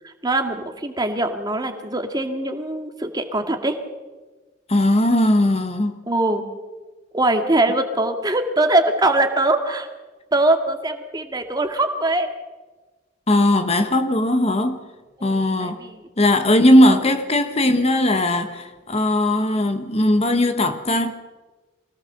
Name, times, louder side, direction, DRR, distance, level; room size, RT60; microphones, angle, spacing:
voice 1, 0.0-3.8 6.1-6.4 7.1-9.9 10.3-12.3 15.2-16.1, right 2 dB, 20° right, 2.1 m, -22 dB
voice 2, 4.7-5.9 13.3-14.9 15.2-15.8 16.2-21.1, left 1 dB, 35° left, 1.2 m, -18 dB
24.5 x 18.0 x 6.7 m
head